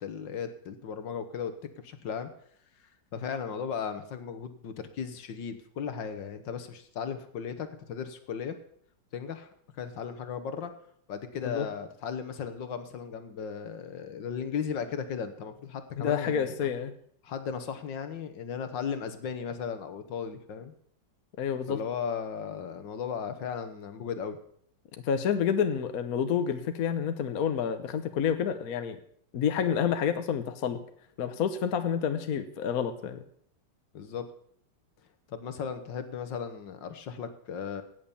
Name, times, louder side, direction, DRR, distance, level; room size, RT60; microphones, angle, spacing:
voice 1, 0.0-2.3 3.1-8.6 9.1-9.5 9.7-10.7 11.1-16.5 17.2-20.7 21.7-24.4 33.9-34.3 35.3-37.8, left 7 dB, 80° left, 10 dB, 1.9 m, -36 dB
voice 2, 16.0-16.9 21.4-21.8 25.1-29.0 29.3-30.8 31.2-33.2, left 8 dB, 55° left, 9 dB, 1.4 m, -29 dB
17.5 x 7.3 x 7.1 m, 0.63 s
omnidirectional pair, 2.0 m